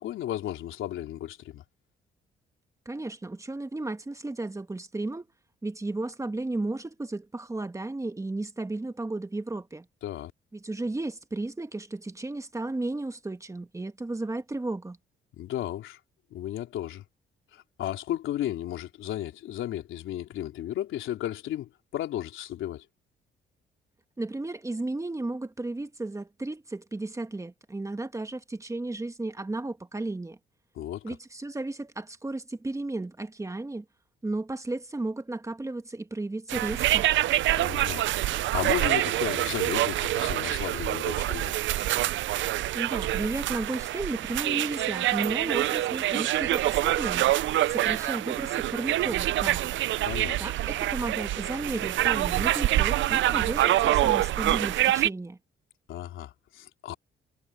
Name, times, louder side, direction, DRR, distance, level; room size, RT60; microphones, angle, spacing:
voice 1, 0.0-1.6 10.0-10.3 15.3-16.0 16.3-17.0 17.5-22.8 30.7-31.1 37.6-41.5 50.0-50.4 55.9-56.9, left 12 dB, 80° left, 3.4 m, -34 dB
voice 2, 2.8-5.3 5.6-9.9 10.5-15.0 24.2-30.4 31.0-33.8 34.2-37.1 42.7-47.3 47.7-49.7 50.4-55.4, right 2 dB, 15° right, 1.5 m, -34 dB
sound 1, 36.5-55.1, right 14 dB, 70° right, 0.5 m, -26 dB
cardioid pair, 90°, 20 cm